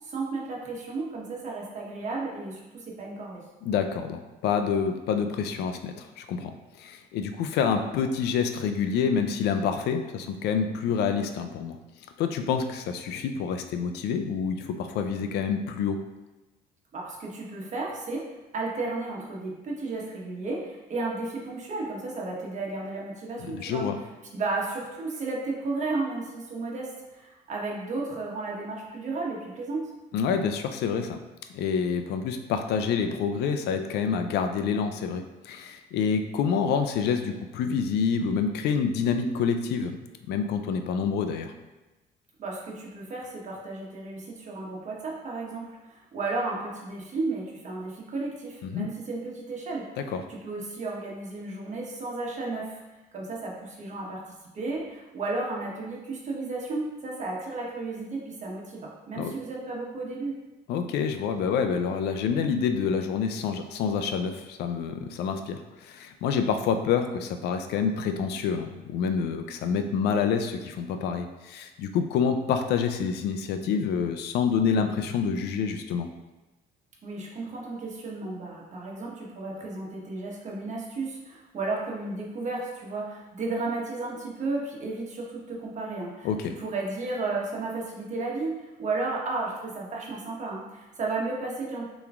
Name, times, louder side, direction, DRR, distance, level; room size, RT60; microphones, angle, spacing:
voice 1, 0.0-3.4 16.9-23.9 24.3-29.9 42.4-49.9 50.3-52.8 53.1-54.2 54.5-60.4 77.0-91.8, right 3 dB, 45° right, -3 dB, 1.2 m, -33 dB
voice 2, 3.6-6.5 6.8-11.8 12.2-16.0 23.6-24.0 30.1-31.2 31.5-40.0 40.3-41.5 48.6-48.9 50.0-50.2 59.2-59.3 60.7-76.1 86.2-86.5, left 6 dB, 75° left, 7 dB, 0.5 m, -27 dB
6.9 x 3.0 x 2.4 m, 1.1 s
cardioid pair, 110°, 17 cm